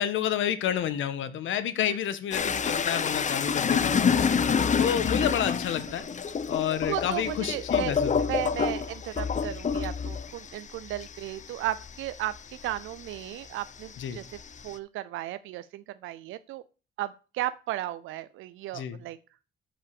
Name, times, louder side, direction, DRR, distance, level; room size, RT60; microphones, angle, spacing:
voice 1, 0.0-4.5 4.8-6.1 6.5-8.4 14.0-14.2 18.7-19.0, left 10 dB, 75° left, 12 dB, 1.7 m, -30 dB
sound 1, 2.3-13.2 13.6-14.7, left 6 dB, 35° left, 0.9 m, -28 dB
voice 2, 6.9-7.9 8.2-12.4 12.6-14.2 14.6-16.6 17.0-19.2, right 14 dB, 90° right, 14 dB, 0.6 m, -35 dB
13.0 x 5.7 x 6.9 m, 0.35 s
cardioid pair, 90°, 20 cm